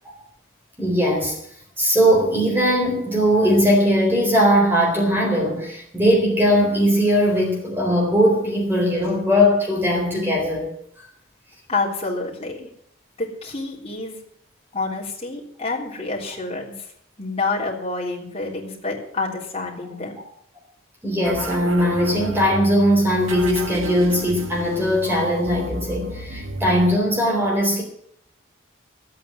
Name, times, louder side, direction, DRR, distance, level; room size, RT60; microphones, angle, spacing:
voice 1, 0.8-1.4 1.8-10.7 21.0-27.8, equal, 10° right, 0 dB, 4.0 m, -19 dB
voice 2, 11.7-12.7 13.2-14.2 14.7-16.9 17.2-20.2, left 3 dB, 30° left, -3 dB, 3.6 m, -28 dB
sound 1, 21.2-26.9, right 1 dB, 90° right, 1.7 m, -32 dB
12.5 x 8.7 x 9.1 m, 0.70 s
head